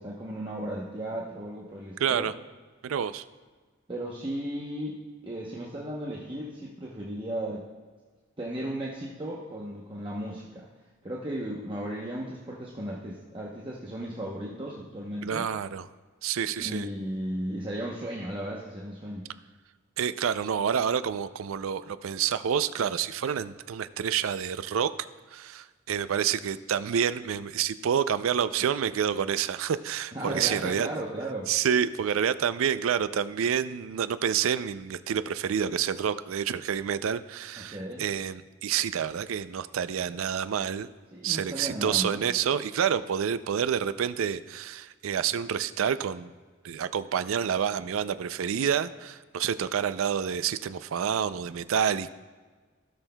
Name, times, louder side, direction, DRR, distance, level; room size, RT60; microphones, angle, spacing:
voice 1, 0.0-2.3 3.9-5.0 5.2-7.6 8.4-10.7 11.0-15.5 16.6-19.3 30.1-31.5 37.6-38.0 41.1-42.3, right 1 dB, 25° right, -4 dB, 0.8 m, -35 dB
voice 2, 2.0-2.3 2.8-3.2 15.2-15.9 16.2-16.9 20.0-24.9 25.3-30.9 31.5-40.9 41.2-46.3 46.6-52.1, right 8 dB, 90° right, 14 dB, 0.4 m, -28 dB
16.5 x 6.3 x 2.2 m, 1.4 s
head